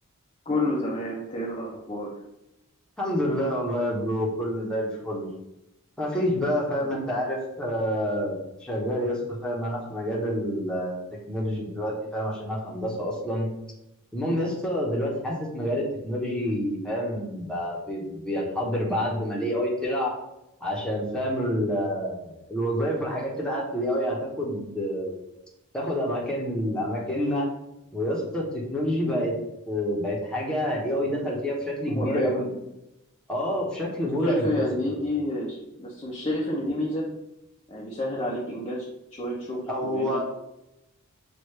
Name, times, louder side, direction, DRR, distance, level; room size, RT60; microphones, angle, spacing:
voice 1, 0.5-2.1 6.8-7.0 29.0-29.2 31.9-32.4 34.2-37.1 37.7-38.8 39.1-40.2, left 1 dB, 25° left, -5 dB, 0.7 m, -29 dB
voice 2, 3.0-5.3 6.0-10.9 11.3-13.5 14.1-20.1 20.6-25.2 25.7-27.5 27.9-29.3 29.7-32.5 33.3-35.0 39.7-40.2, equal, 5° left, -4 dB, 1.1 m, -28 dB
6.2 x 2.6 x 3.2 m, 0.88 s
head